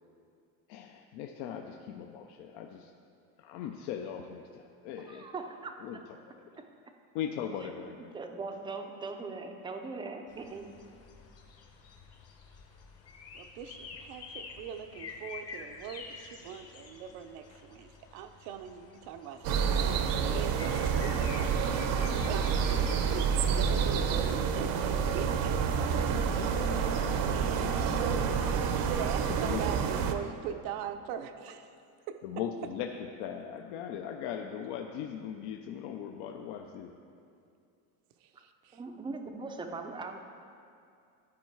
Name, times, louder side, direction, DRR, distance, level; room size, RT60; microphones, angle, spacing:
voice 1, 0.7-2.9 3.4-5.3 5.8-6.0 7.1-8.1 29.3-29.6 32.2-36.9, left 8 dB, 70° left, 3 dB, 0.6 m, -39 dB
voice 2, 5.0-5.7 8.1-10.7 38.7-40.2, right 3 dB, 10° right, 4 dB, 0.4 m, -40 dB
sound 1, 10.3-27.8, left 4 dB, 35° left, 0.9 m, -50 dB
voice 3, 13.3-22.4 22.9-25.5 27.3-28.4 28.7-31.7 32.1-32.2 38.2-38.8, right 8 dB, 85° right, 7 dB, 0.8 m, -42 dB
sound 2, 19.4-30.1, right 6 dB, 50° right, 0.6 m, -28 dB
13.0 x 4.7 x 4.5 m, 2.4 s
cardioid pair, 140°, 44 cm